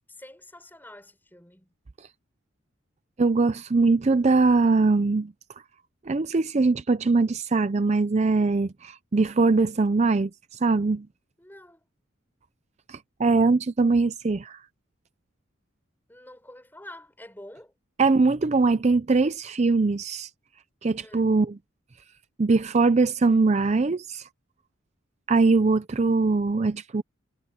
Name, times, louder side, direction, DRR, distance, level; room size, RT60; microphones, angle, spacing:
voice 1, 0.0-1.7 11.4-11.8 16.1-17.7 21.0-21.3, left 1 dB, 10° left, 6.0 m, -47 dB
voice 2, 3.2-5.3 6.1-11.1 12.9-14.6 18.0-20.3 20.8-21.5 22.4-24.3 25.3-27.0, right 3 dB, 35° right, 0.4 m, -22 dB
head